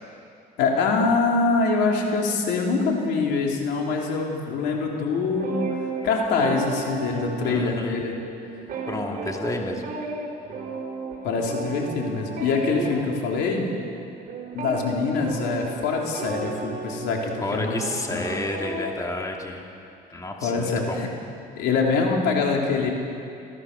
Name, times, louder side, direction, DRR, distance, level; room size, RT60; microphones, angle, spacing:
voice 1, 0.6-5.6 6.0-8.2 11.2-13.7 14.5-17.8 18.1-18.3 20.4-21.1 21.6-22.9, left 4 dB, 85° left, 0 dB, 3.5 m, -24 dB
sound 1, 5.3-8.1 8.3-19.0, right 3 dB, 55° right, 3.9 m, -34 dB
voice 2, 7.4-8.0 8.9-9.8 17.4-19.6 20.1-21.0, left 2 dB, 20° left, 1 dB, 2.4 m, -30 dB
27.5 x 14.5 x 6.8 m, 2.5 s
cardioid pair, 110°, 17 cm